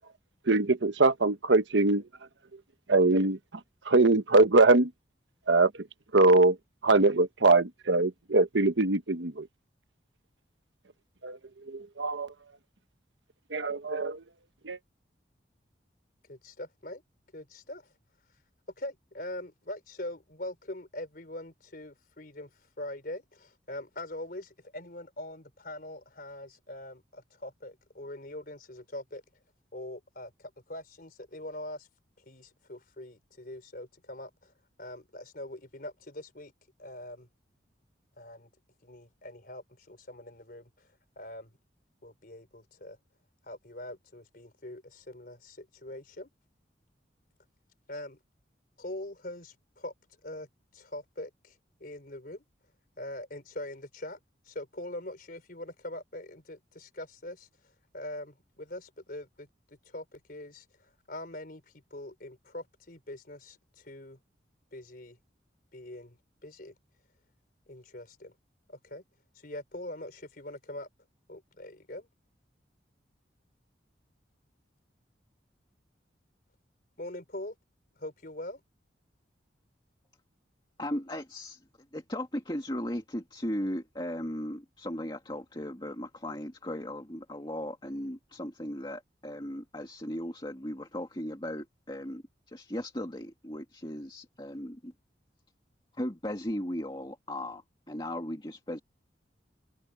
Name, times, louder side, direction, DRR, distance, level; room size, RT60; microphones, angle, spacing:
voice 1, 0.5-2.0 2.9-3.4 3.9-4.9 5.5-5.7 6.1-6.6 6.8-9.5 11.2-11.4 11.7-12.3 13.5-14.2 14.6-14.8, right 3 dB, 80° right, 1.2 m, -22 dB
voice 2, 16.3-17.0 17.3-17.9 18.8-22.5 22.8-29.2 29.7-31.9 32.3-34.5 34.8-36.5 36.8-37.3 38.2-38.5 38.8-40.9 41.2-41.5 42.0-43.0 43.4-46.3 47.9-48.2 48.8-49.9 50.2-51.5 51.8-52.4 53.0-54.2 54.5-57.5 57.9-61.6 61.9-64.2 64.7-65.2 65.7-66.2 66.4-66.7 67.7-68.3 68.7-69.0 69.4-70.9 71.3-72.1 77.0-77.5 78.0-78.6, left 1 dB, 50° left, 4.3 m, -42 dB
voice 3, 80.8-81.6 81.9-94.9 95.9-98.8, left 1 dB, 25° left, 2.3 m, -37 dB
open air
head